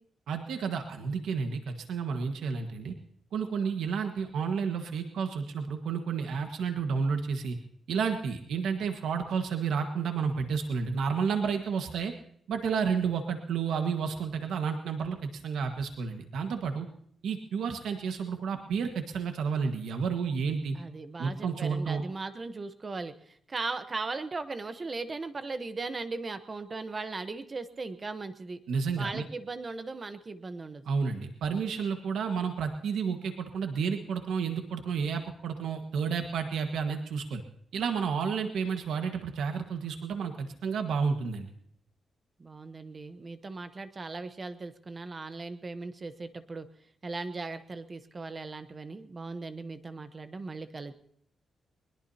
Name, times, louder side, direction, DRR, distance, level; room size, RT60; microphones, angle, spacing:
voice 1, 0.3-2.9 3.3-7.6 7.9-12.1 12.5-16.9 17.2-20.8 21.2-22.0 28.7-29.2 30.8-37.4 37.7-41.5, right 6 dB, 85° right, 5 dB, 1.5 m, -31 dB
voice 2, 20.7-28.6 29.0-30.9 42.4-46.7 47.0-50.9, right 3 dB, 25° right, 10 dB, 1.0 m, -38 dB
21.5 x 21.0 x 2.8 m, 0.66 s
wide cardioid pair, 170°, 0 cm